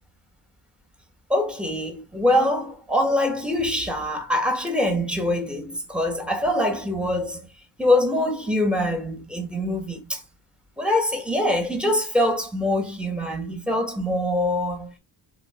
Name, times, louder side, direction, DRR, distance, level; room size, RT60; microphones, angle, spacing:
voice 1, 1.3-7.5 7.8-10.2 10.8-14.9, left 1 dB, ahead, 1.4 m, -24 dB
3.8 x 3.1 x 4.2 m
cardioid pair, 90°, 46 cm